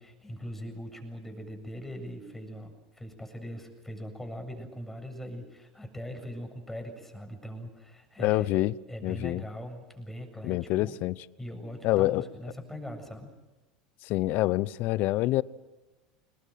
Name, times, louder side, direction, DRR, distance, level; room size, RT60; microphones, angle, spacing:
voice 1, 0.0-8.5 8.9-11.0 11.4-13.3, equal, 5° left, 7.7 m, -41 dB
voice 2, 8.2-8.7 9.0-9.4 10.4-11.1 11.8-12.2 14.1-15.4, left 17 dB, 55° left, 0.7 m, -26 dB
27.5 x 21.0 x 7.7 m
hypercardioid pair, 85°, 3 cm